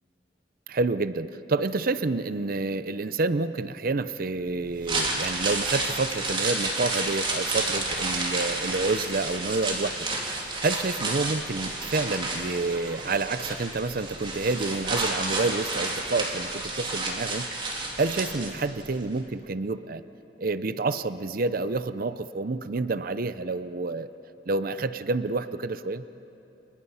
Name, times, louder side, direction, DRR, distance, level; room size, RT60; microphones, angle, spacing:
voice 1, 0.7-10.0 10.3-20.0 20.4-24.1 24.5-26.0, right 3 dB, 55° right, 13 dB, 0.6 m, -29 dB
sound 1, 4.7-18.9 19.2-19.3, right 2 dB, 30° right, 3.5 m, -30 dB
29.5 x 29.0 x 5.7 m, 2.9 s
head